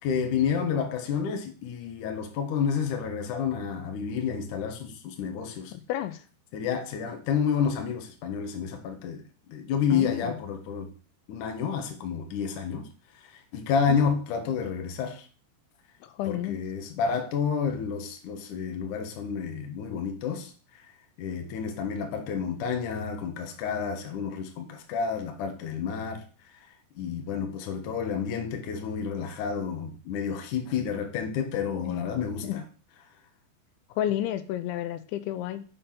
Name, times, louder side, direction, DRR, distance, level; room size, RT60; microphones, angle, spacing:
voice 1, 0.0-5.7 6.5-9.2 9.5-10.9 11.3-12.9 13.3-15.3 16.2-20.8 21.2-26.2 27.0-32.6, left 6 dB, 65° left, 2.0 m, -30 dB
voice 2, 5.7-6.2 9.9-10.3 13.9-14.0 16.0-16.6 31.9-32.2 32.4-32.6 34.0-35.6, left 12 dB, 85° left, 3.0 m, -31 dB
6.9 x 5.6 x 5.7 m
omnidirectional pair, 5.3 m